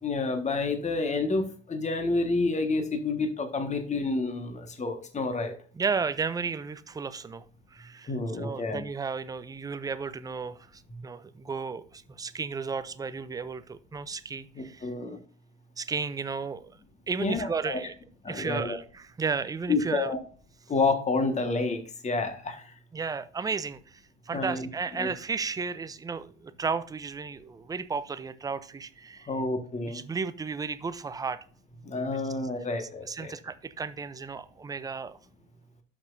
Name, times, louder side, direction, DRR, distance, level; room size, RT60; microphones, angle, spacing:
voice 1, 0.0-5.5 8.1-8.8 10.9-11.0 14.5-15.2 17.2-17.8 18.2-18.8 19.7-20.2 20.7-22.7 24.3-24.7 25.0-25.1 29.3-30.0 31.8-33.3, left 3 dB, 20° left, 6 dB, 1.5 m, -29 dB
voice 2, 5.8-7.5 7.7-14.9 15.8-16.7 17.1-17.9 18.3-20.1 22.9-29.3 29.9-31.4 32.8-35.2, right 5 dB, 10° right, 13 dB, 0.5 m, -34 dB
11.5 x 6.2 x 2.6 m, 0.43 s
hypercardioid pair, 80°, 38 cm